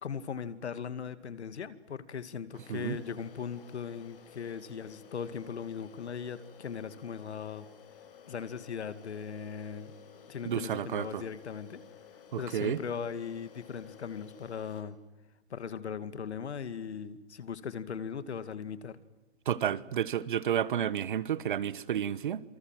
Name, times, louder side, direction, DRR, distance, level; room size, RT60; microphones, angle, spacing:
voice 1, 0.0-7.7 8.3-9.9 10.3-11.8 12.4-15.0 15.5-19.0, left 7 dB, 75° left, 2.3 m, -39 dB
sound 1, 2.5-14.8, left 7 dB, 55° left, 6.0 m, -54 dB
voice 2, 10.4-11.2 12.3-12.8 19.5-22.4, right 9 dB, 45° right, 1.3 m, -31 dB
27.5 x 25.0 x 7.7 m
hypercardioid pair, 165°, 34 cm